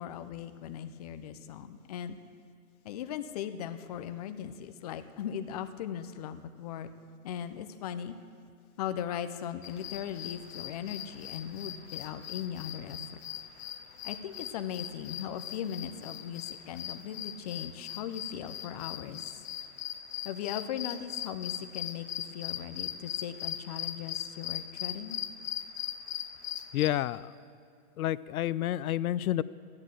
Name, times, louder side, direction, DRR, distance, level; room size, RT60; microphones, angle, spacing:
voice 1, 0.0-2.2 2.8-6.9 7.2-8.1 8.8-13.0 14.0-19.3 20.2-25.2, left 9 dB, 30° left, 9 dB, 0.5 m, -38 dB
sound 1, 9.6-26.9, left 11 dB, 45° left, 1.0 m, -39 dB
voice 2, 26.7-27.3 28.0-29.4, left 13 dB, 75° left, 17 dB, 0.6 m, -29 dB
14.5 x 10.5 x 7.5 m, 2.3 s
hypercardioid pair, 150°, 44 cm